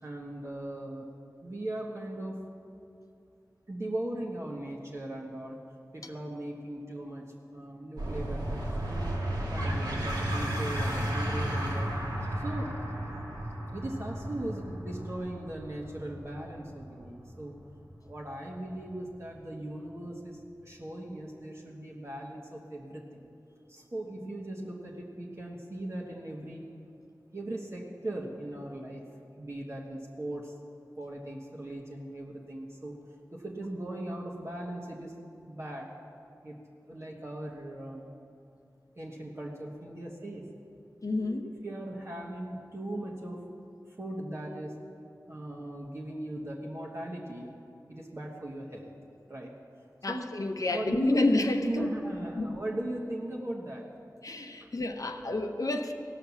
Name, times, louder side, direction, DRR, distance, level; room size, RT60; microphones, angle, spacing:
voice 1, 0.0-1.1 1.4-2.4 3.7-5.6 5.9-7.3 7.5-9.1 9.5-12.0 12.3-12.7 13.7-17.5 18.0-20.4 20.6-23.3 23.7-26.6 27.3-29.0 29.3-30.5 31.0-33.0 33.3-35.9 36.4-36.6 36.9-38.1 38.9-40.5 41.2-41.3 41.6-43.4 44.0-44.7 45.3-47.5 47.9-48.9 49.3-49.5 50.1-50.3 50.7-51.2 51.6-53.8 54.6-54.8, right 1 dB, 40° right, -3 dB, 1.5 m, -39 dB
sound 1, 8.0-19.1, right 1 dB, 90° right, 2.6 m, -34 dB
voice 2, 41.0-41.5 50.0-51.9 52.4-52.6 54.2-55.9, left 2 dB, 60° left, 5 dB, 0.8 m, -29 dB
17.0 x 5.7 x 7.1 m, 2.5 s
wide cardioid pair, 50°, 7 cm